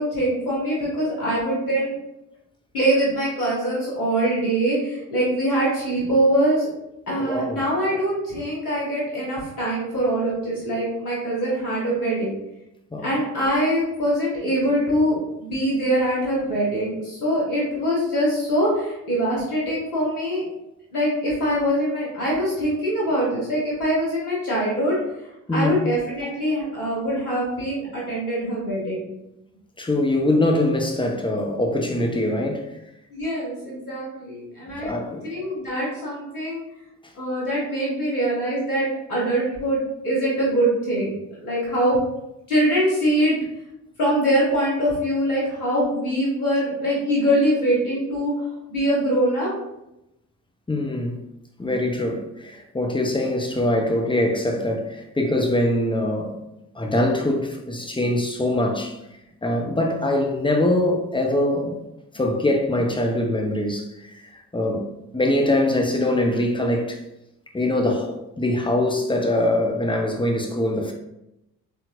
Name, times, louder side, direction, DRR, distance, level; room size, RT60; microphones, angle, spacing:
voice 1, 0.0-1.9 2.7-6.7 7.1-12.3 13.0-20.4 20.9-25.0 25.5-29.0 33.1-34.9 35.2-36.6 37.1-42.0 42.5-43.3 44.0-48.3 48.7-49.5 62.7-62.8, right 1 dB, 90° left, 1.5 m, -23 dB
voice 2, 7.2-7.6 12.9-13.1 25.5-25.7 29.8-32.7 34.8-35.3 50.7-51.2 51.6-56.4 56.7-58.9 59.4-61.8 62.1-64.9 65.1-67.0 67.5-70.9, left 1 dB, 10° left, 0.9 m, -23 dB
4.4 x 3.8 x 2.7 m
figure-of-eight pair, 45°, 43 cm